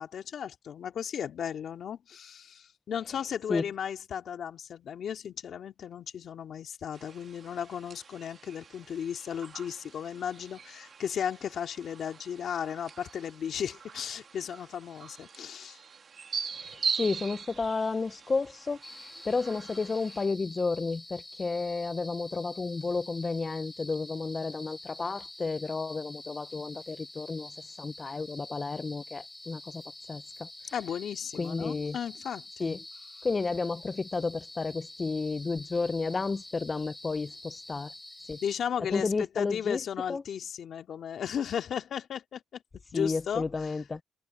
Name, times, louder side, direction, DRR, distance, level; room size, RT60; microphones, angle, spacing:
voice 1, 0.0-15.8 30.7-32.8 38.4-42.6 42.9-43.8, left 8 dB, 60° left, 2.4 m, -35 dB
sound 1, 6.9-20.3, right 6 dB, 45° right, 2.3 m, -41 dB
voice 2, 16.5-29.8 30.1-30.5 31.4-32.0 32.6-32.8 33.2-37.9 38.3-38.4 38.9-39.8 40.1-40.2 42.9-44.0, left 4 dB, 30° left, 0.6 m, -32 dB
sound 2, 18.8-38.5, left 1 dB, 10° left, 7.2 m, -47 dB
cardioid pair, 90°, 0 cm